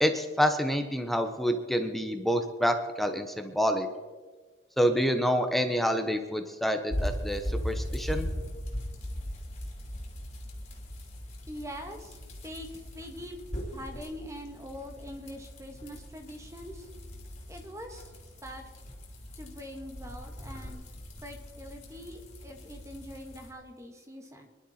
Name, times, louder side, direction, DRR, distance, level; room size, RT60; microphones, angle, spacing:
voice 1, 0.0-3.9 4.8-8.3, equal, ahead, 6 dB, 0.9 m, -27 dB
sound 1, 6.9-23.5, equal, 35° left, 3.2 m, -39 dB
voice 2, 11.5-13.4 13.7-16.9 17.5-18.1 18.4-18.6 19.4-20.8 21.2-24.5, equal, 15° right, 5 dB, 1.6 m, -43 dB
24.0 x 11.5 x 4.3 m, 1.4 s
head